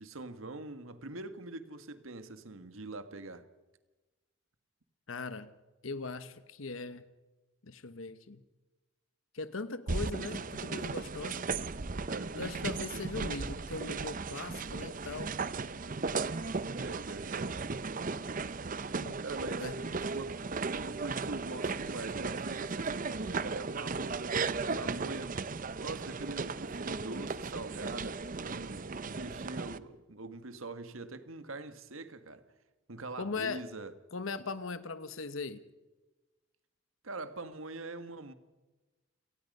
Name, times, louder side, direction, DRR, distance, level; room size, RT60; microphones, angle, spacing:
voice 1, 0.0-3.5 12.1-13.3 16.8-17.6 19.2-19.7 20.1-20.5 20.8-24.3 24.7-25.5 25.8-32.4 32.9-33.9 37.0-38.3, right 2 dB, 90° right, 1.7 m, -44 dB
voice 2, 5.1-5.5 5.8-7.1 7.6-8.4 9.3-11.4 12.3-15.3 18.9-19.2 19.6-19.9 33.2-33.6 34.1-35.6, left 4 dB, 80° left, 1.1 m, -39 dB
sound 1, 9.9-29.8, right 4 dB, 40° right, 0.7 m, -36 dB
28.5 x 19.0 x 5.5 m
head